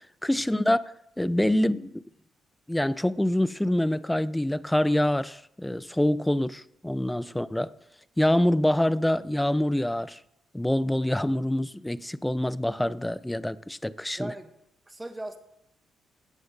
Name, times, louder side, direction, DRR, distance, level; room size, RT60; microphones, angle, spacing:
voice 1, 0.2-0.9 1.2-2.0 2.7-7.7 8.2-10.2 10.5-14.3, left 1 dB, 5° left, 0.4 m, -25 dB
voice 2, 14.2-14.5 14.9-15.4, right 1 dB, 15° right, 1.6 m, -38 dB
16.5 x 7.3 x 5.3 m
cardioid pair, 90°, 0 cm